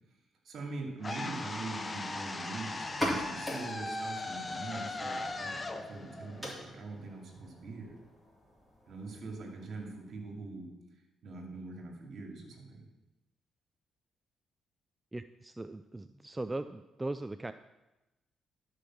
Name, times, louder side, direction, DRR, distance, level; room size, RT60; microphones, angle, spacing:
voice 1, 0.4-7.9 8.9-10.7 11.2-12.8, right 3 dB, 60° right, 1 dB, 2.4 m, -43 dB
sound 1, 1.0-7.1, left 2 dB, 25° left, 0.8 m, -39 dB
sound 2, 2.8-10.3, equal, 5° left, 3.6 m, -42 dB
voice 2, 15.1-17.5, right 2 dB, 15° right, 10 dB, 0.3 m, -39 dB
11.5 x 5.3 x 6.2 m, 0.99 s
cardioid pair, 90°, 0 cm